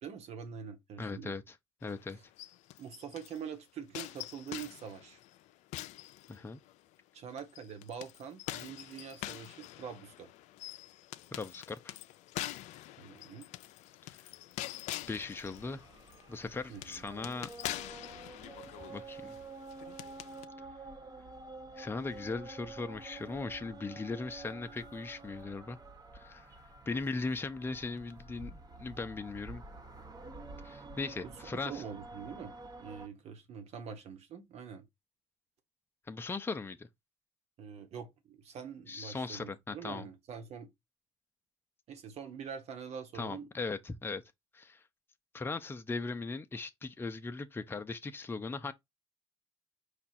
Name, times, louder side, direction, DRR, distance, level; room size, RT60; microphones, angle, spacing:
voice 1, 0.0-1.3 2.8-5.2 7.1-10.3 13.0-13.5 16.7-17.0 31.2-31.3 31.6-34.8 37.6-40.7 41.9-43.5, right 7 dB, 65° right, 1.2 m, -45 dB
voice 2, 1.0-1.5 1.8-2.2 6.3-6.6 11.3-12.0 15.1-15.8 16.3-17.5 18.9-19.4 21.8-25.8 26.1-26.5 26.9-29.6 30.6-31.8 36.1-36.9 38.9-40.1 43.1-44.2 44.5-44.8 45.3-48.7, left 3 dB, 20° left, 0.6 m, -38 dB
sound 1, 1.8-3.4 3.9-6.8 7.4-20.5, left 15 dB, 80° left, 0.4 m, -45 dB
sound 2, 15.0-33.1, right 3 dB, 35° right, 1.2 m, -49 dB
5.1 x 2.3 x 4.2 m
supercardioid pair, 75°, 12 cm